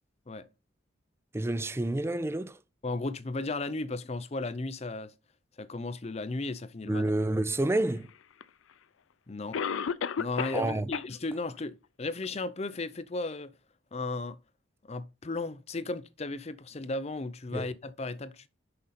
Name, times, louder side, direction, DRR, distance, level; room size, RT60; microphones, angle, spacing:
voice 1, 1.3-2.6 6.9-8.1 10.5-10.9 17.5-17.7, right 1 dB, 15° right, 0.4 m, -29 dB
voice 2, 2.8-5.1 5.6-7.0 9.3-9.6 10.2-13.5 13.9-14.4 14.8-18.5, left 2 dB, 35° left, 0.6 m, -35 dB
Cough, 8.4-8.5 9.5-10.7 10.9-11.0 11.6-11.7 12.2-12.3, left 7 dB, 85° left, 0.5 m, -31 dB
6.6 x 5.4 x 4.1 m
head